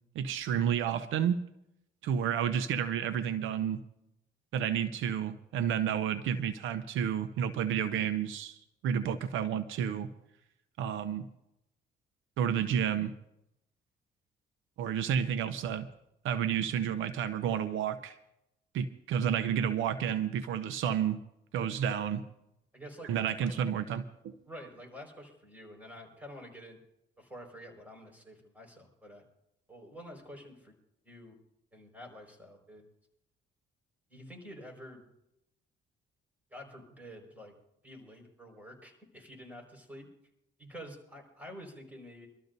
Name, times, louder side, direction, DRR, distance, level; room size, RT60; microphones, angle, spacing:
voice 1, 0.1-1.4 2.0-3.8 4.5-10.1 10.8-11.2 12.4-13.1 14.8-15.9 16.2-18.2 18.7-21.2 21.5-22.2 23.1-24.3, right 8 dB, 80° right, 11 dB, 0.7 m, -31 dB
voice 2, 22.7-23.8 24.5-26.8 27.2-29.2 29.7-30.8 31.0-31.4 31.7-32.9 34.1-35.1 36.5-37.5 37.8-40.1 40.6-42.3, equal, 10° right, 1 dB, 5.0 m, -48 dB
25.5 x 13.0 x 2.7 m, 0.82 s
cardioid pair, 90°, 20 cm